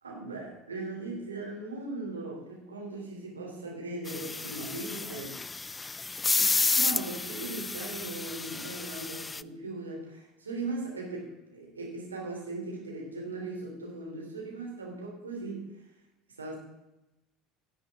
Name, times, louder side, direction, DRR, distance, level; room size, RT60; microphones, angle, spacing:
voice 1, 0.0-5.4 6.8-15.7 16.4-16.6, right 2 dB, 80° right, -1 dB, 3.3 m, -38 dB
sound 1, 4.1-9.4, left 3 dB, 15° left, 0.3 m, -31 dB
17.5 x 8.0 x 3.7 m, 0.96 s
figure-of-eight pair, 70°, 0 cm